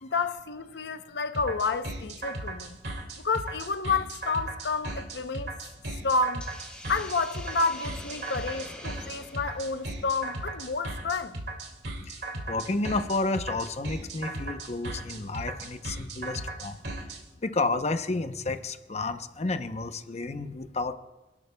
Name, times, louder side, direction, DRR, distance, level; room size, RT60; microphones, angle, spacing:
voice 1, 0.0-2.8 3.2-5.5 6.0-6.5 6.9-11.4, left 4 dB, 70° left, 0.7 m, -30 dB
sound 1, 1.3-17.2, right 2 dB, 65° right, 2.2 m, -36 dB
Hiss, 6.4-10.7, left 1 dB, 5° left, 2.8 m, -45 dB
voice 2, 12.5-16.8 17.4-20.9, left 3 dB, 40° left, 0.7 m, -31 dB
27.0 x 11.5 x 2.3 m
head